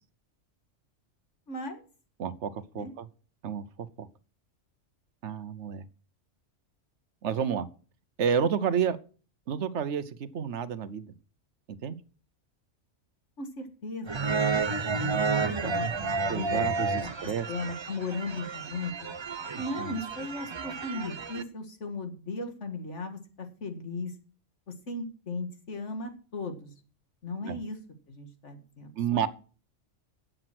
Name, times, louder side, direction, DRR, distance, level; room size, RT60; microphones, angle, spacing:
voice 1, 1.5-1.8 2.7-2.9 13.4-15.9 16.2-16.7 17.0-17.1 17.5-18.9 19.6-24.1 24.7-26.7 27.2-27.8 28.1-29.3, left 3 dB, 70° left, 6 dB, 2.2 m, -37 dB
voice 2, 2.2-3.1 3.4-4.1 5.2-5.8 7.2-7.7 8.2-9.0 9.5-11.1 11.8-12.0 15.6-15.7 16.3-17.5 19.8-20.0 27.4-27.6 29.0-29.3, right 7 dB, 70° right, 14 dB, 1.1 m, -30 dB
sound 1, 14.1-21.4, right 4 dB, 30° right, 0.6 m, -31 dB
12.0 x 7.8 x 6.0 m, 0.39 s
omnidirectional pair, 1.3 m